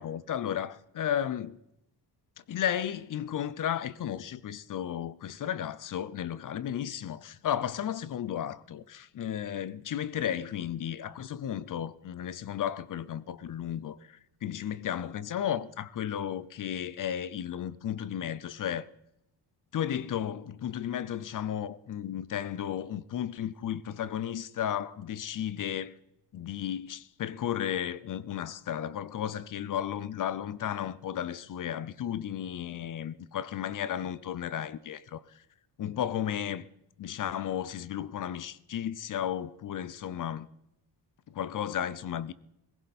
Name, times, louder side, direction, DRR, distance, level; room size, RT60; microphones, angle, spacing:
voice 1, 0.0-1.6 2.5-18.9 19.7-25.9 26.3-35.4 35.8-36.7 37.0-40.5 41.3-42.3, left 10 dB, 50° left, 0.6 m, -34 dB
18.5 x 16.0 x 4.2 m
wide cardioid pair, 155°, 42 cm